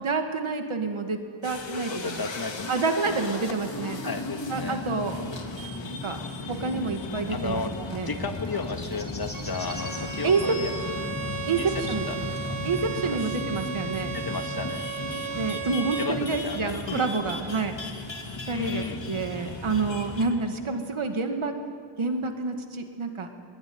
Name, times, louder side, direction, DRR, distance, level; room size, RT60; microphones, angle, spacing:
voice 1, 0.0-2.3 2.7-4.0 4.5-5.2 6.0-6.2 6.5-7.6 7.9-8.1 10.2-10.4 11.5-12.4 12.6-14.2 15.3-17.8 18.5-21.5 22.0-23.3, right 4 dB, 75° right, 5 dB, 2.2 m, -28 dB
sound 1, 1.4-20.4, left 3 dB, 65° left, 2.8 m, -36 dB
voice 2, 1.9-2.8 3.1-3.2 4.0-4.8 7.3-7.7 8.1-11.0 11.6-12.2 12.5-12.6 13.0-13.2 14.1-14.9 16.0-17.0 18.5-19.0, left 4 dB, 45° left, 6 dB, 1.7 m, -34 dB
sound 2, 8.5-10.8 12.9-13.0 13.9-14.0, left 2 dB, 20° left, 3.3 m, -42 dB
Bowed string instrument, 9.3-16.2, right 6 dB, 40° right, 2.1 m, -35 dB
22.0 x 21.0 x 9.6 m, 2.1 s
wide cardioid pair, 100°, 49 cm